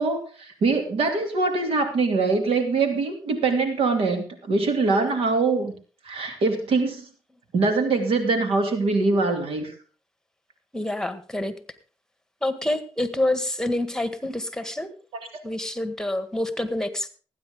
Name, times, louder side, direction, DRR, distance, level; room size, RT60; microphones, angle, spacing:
voice 1, 0.0-5.7 6.1-7.0 7.5-9.7, right 3 dB, 80° right, 6 dB, 2.6 m, -23 dB
voice 2, 10.7-11.5 12.4-14.9 15.4-17.1, left 1 dB, 5° left, 11 dB, 1.6 m, -27 dB
19.5 x 9.4 x 3.7 m, 0.36 s
cardioid pair, 60°, 9 cm